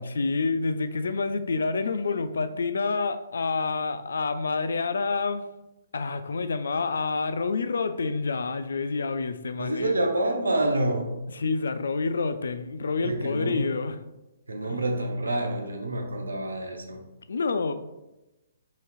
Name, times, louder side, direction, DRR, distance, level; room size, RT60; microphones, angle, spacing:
voice 1, 0.0-5.5 5.9-9.9 11.3-14.0 14.7-14.8 17.3-17.7, left 4 dB, 70° left, 11 dB, 0.3 m, -28 dB
voice 2, 9.6-11.1 13.0-13.7 14.5-17.0, right 1 dB, 80° right, 3 dB, 0.7 m, -27 dB
5.7 x 2.9 x 2.4 m, 0.99 s
figure-of-eight pair, 130°, 0 cm